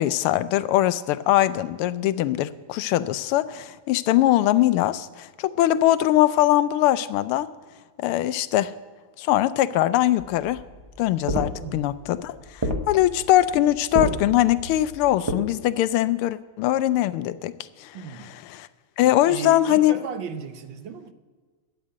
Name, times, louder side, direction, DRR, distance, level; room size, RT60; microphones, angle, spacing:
voice 1, 0.0-7.5 8.0-8.7 9.2-10.6 11.0-17.5 17.8-18.0 18.2-18.7 19.0-20.1, left 14 dB, 80° left, 15 dB, 1.5 m, -22 dB
sound 1, 10.2-15.3, equal, 25° right, 0.6 m, -30 dB
voice 2, 11.6-11.9 17.9-18.3 19.3-21.1, right 7 dB, 65° right, 9 dB, 1.5 m, -36 dB
12.5 x 9.1 x 7.5 m, 1.5 s
omnidirectional pair, 2.4 m